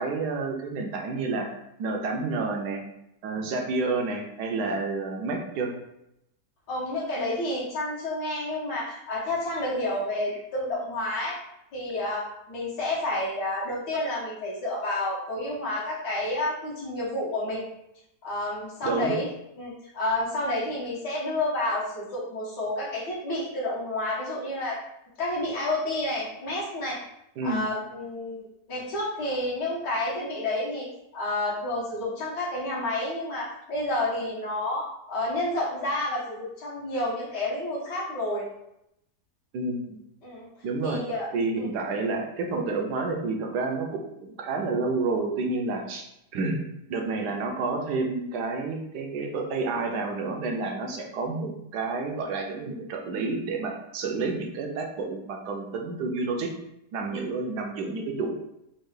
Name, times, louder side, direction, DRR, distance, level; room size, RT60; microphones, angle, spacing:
voice 1, 0.0-1.5 1.8-2.8 3.2-5.7 18.8-19.2 27.4-27.6 39.5-40.0 40.6-41.0 41.3-46.1 46.3-46.6 46.9-56.5 56.9-58.3, right 3 dB, 75° right, 2 dB, 1.2 m, -29 dB
voice 2, 6.7-11.4 11.7-17.6 18.2-19.3 19.6-24.8 25.2-27.0 27.4-30.9 31.1-38.5 40.2-40.5 40.8-41.3 41.6-41.7 57.1-57.2, left 1 dB, 75° left, -7 dB, 1.7 m, -30 dB
4.4 x 2.3 x 3.2 m, 0.81 s
omnidirectional pair, 1.8 m